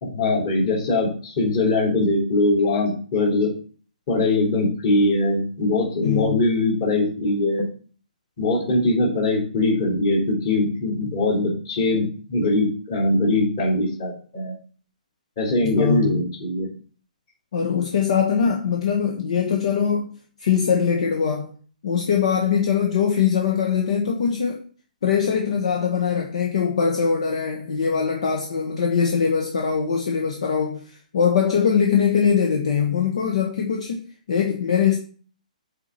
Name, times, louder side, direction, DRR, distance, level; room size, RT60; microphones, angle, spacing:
voice 1, 0.0-3.5 4.1-7.7 8.4-14.5 15.4-16.7, left 2 dB, 30° left, 3.5 m, -21 dB
voice 2, 6.0-6.4 15.6-16.2 17.5-20.1 20.4-21.5 21.8-24.6 25.0-35.0, left 7 dB, 50° left, 1.3 m, -22 dB
7.1 x 4.6 x 6.9 m
hypercardioid pair, 175°, 4 cm